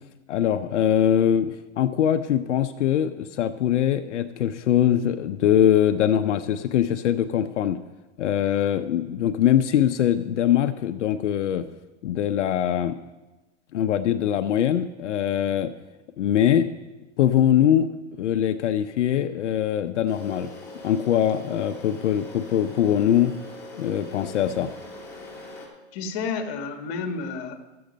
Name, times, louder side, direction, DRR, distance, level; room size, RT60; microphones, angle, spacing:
voice 1, 0.3-7.8 8.2-11.7 12.0-13.0 13.7-15.7 16.2-16.7 17.2-17.9 18.2-20.5 20.8-23.3 23.8-24.7, left 10 dB, 85° left, 8 dB, 0.7 m, -22 dB
sound 1, 20.1-25.7, left 2 dB, 10° left, 2.0 m, -41 dB
voice 2, 25.9-27.6, left 4 dB, 35° left, 6 dB, 1.4 m, -31 dB
13.0 x 7.8 x 5.2 m, 1.1 s
hypercardioid pair, 150°, 35 cm